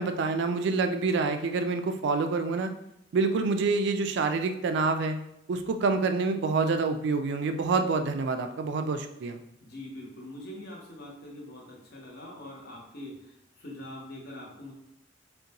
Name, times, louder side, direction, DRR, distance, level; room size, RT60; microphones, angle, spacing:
voice 1, 0.0-2.7 3.1-5.2 5.5-9.4, right 4 dB, 65° right, 7 dB, 0.3 m, -27 dB
voice 2, 9.6-14.7, left 1 dB, 55° left, -2 dB, 0.9 m, -43 dB
3.8 x 2.2 x 2.8 m, 0.79 s
head